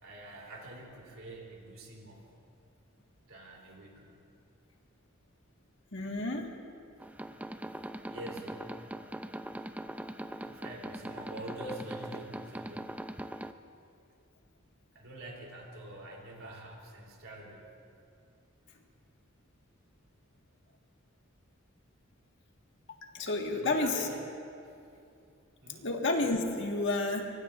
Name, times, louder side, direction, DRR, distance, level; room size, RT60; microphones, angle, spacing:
voice 1, 0.0-2.3 3.3-4.1 8.0-8.7 10.3-13.0 14.9-17.7 23.5-24.2 24.6-24.7 25.6-25.9, right 1 dB, 85° right, -1 dB, 3.3 m, -45 dB
voice 2, 5.9-6.5 22.9-24.1 25.8-27.3, left 2 dB, 60° left, 2 dB, 1.7 m, -31 dB
sound 1, 7.0-13.5, right 1 dB, 5° right, 0.4 m, -41 dB
24.0 x 24.0 x 2.5 m, 2.6 s
head